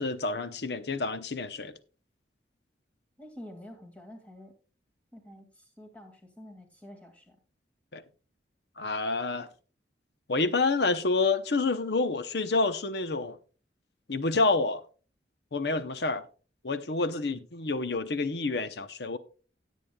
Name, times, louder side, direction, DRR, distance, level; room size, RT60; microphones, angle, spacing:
voice 1, 0.0-1.7 7.9-8.0 8.8-9.5 10.3-13.4 14.1-14.8 15.5-16.3 16.6-19.2, left 3 dB, 70° left, 0.8 m, -28 dB
voice 2, 3.2-4.5 5.1-7.4, left 1 dB, 10° left, 2.1 m, -48 dB
17.5 x 8.3 x 2.3 m
head